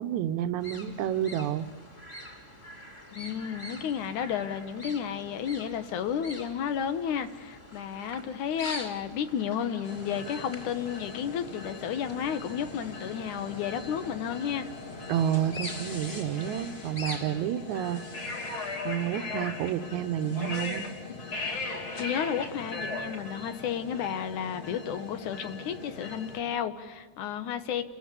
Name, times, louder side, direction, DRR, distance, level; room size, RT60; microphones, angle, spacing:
voice 1, 0.0-1.7 15.1-18.4 18.8-20.9, right 10 dB, 80° right, 10 dB, 2.2 m, -30 dB
sound 1, 0.6-17.5, left 1 dB, 20° left, 2.4 m, -45 dB
voice 2, 3.1-14.7 21.9-27.8, left 8 dB, 85° left, 9 dB, 2.7 m, -32 dB
sound 2, 9.8-26.4, left 3 dB, 45° left, 3.4 m, -39 dB
29.5 x 14.5 x 8.5 m, 1.4 s
omnidirectional pair, 3.4 m